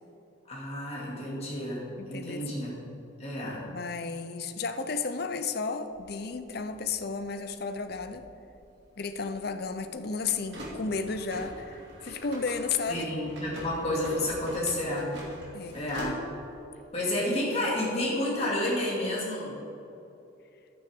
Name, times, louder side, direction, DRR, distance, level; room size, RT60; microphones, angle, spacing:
voice 1, 0.5-2.7 3.2-3.7 12.9-15.2 15.7-16.2 16.9-19.6, left 1 dB, 30° left, -5 dB, 2.4 m, -30 dB
voice 2, 2.0-2.6 3.7-8.2 9.0-13.1 15.5-15.8, left 4 dB, 50° left, 9 dB, 0.6 m, -33 dB
sound 1, 5.9-16.6, right 1 dB, 60° right, 2.3 m, -44 dB
11.0 x 9.2 x 3.6 m, 2.9 s
head